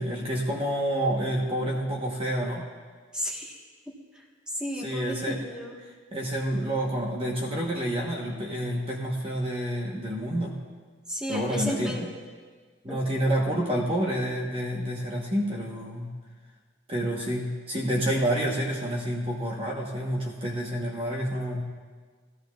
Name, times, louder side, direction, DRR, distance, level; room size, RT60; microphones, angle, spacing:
voice 1, 0.0-2.7 4.8-5.4 6.1-10.6 11.3-11.9 12.8-16.1 16.9-21.6, equal, 30° right, -2 dB, 1.1 m, -28 dB
voice 2, 3.1-3.6 4.1-5.8 11.1-12.1 12.9-13.0, equal, 5° right, -3 dB, 1.3 m, -33 dB
17.0 x 14.0 x 2.4 m, 1.5 s
head